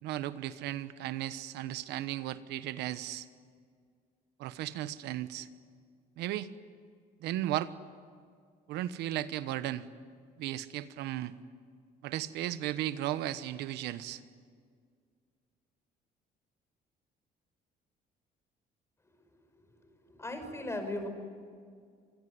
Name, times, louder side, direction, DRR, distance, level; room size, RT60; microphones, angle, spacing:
voice 1, 0.0-3.3 4.4-5.5 6.2-6.5 7.2-7.7 8.7-9.9 10.4-11.3 12.0-14.2, right 13 dB, 85° right, 13 dB, 1.2 m, -35 dB
voice 2, 19.8-21.1, left 1 dB, 15° left, 6 dB, 5.6 m, -38 dB
26.5 x 21.5 x 9.6 m, 2.1 s
cardioid pair, 110°, 17 cm